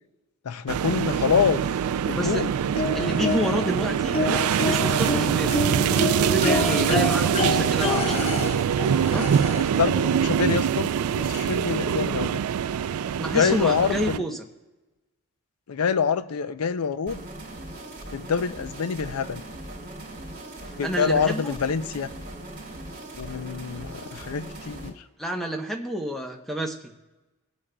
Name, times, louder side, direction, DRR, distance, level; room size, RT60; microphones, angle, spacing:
voice 1, 0.5-1.6 2.1-2.5 9.8-10.9 11.1-12.4 13.3-14.2 15.7-17.2 18.1-19.4 20.8-22.1 23.2-24.9, left 6 dB, 85° left, 0.5 m, -26 dB
sound 1, 0.7-14.2, right 8 dB, 80° right, 0.3 m, -24 dB
voice 2, 2.1-2.4 2.9-8.6 9.0-9.3 13.2-14.4 20.8-21.5 25.2-26.7, right 1 dB, ahead, 0.8 m, -29 dB
sound 2, 2.7-3.7 4.1-9.8 11.0-11.1 11.5-11.6, left 3 dB, 30° left, 0.5 m, -28 dB
sound 3, 17.1-24.9, right 1 dB, 45° right, 3.0 m, -40 dB
25.5 x 8.6 x 2.2 m
head